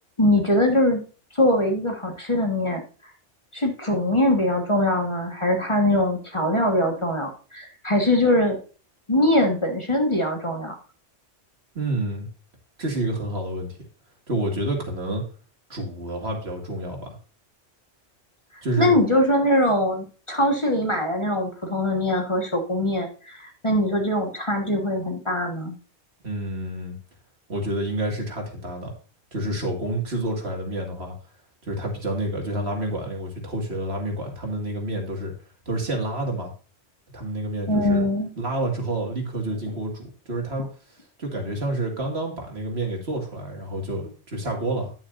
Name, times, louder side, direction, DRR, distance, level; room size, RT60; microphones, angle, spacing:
voice 1, 0.2-1.0 1.3-2.8 3.5-8.6 9.1-10.7 18.8-25.7 37.7-38.3, left 1 dB, 25° left, 2 dB, 1.5 m, -22 dB
voice 2, 11.7-12.3 12.8-13.8 14.3-15.2 15.7-17.2 18.6-18.9 26.2-27.0 27.5-28.9 29.3-31.1 31.6-35.3 35.7-36.5 37.1-38.0 38.4-40.7 41.2-44.9, right 1 dB, 60° right, 1 dB, 2.4 m, -28 dB
9.6 x 8.8 x 2.6 m, 0.37 s
omnidirectional pair, 1.2 m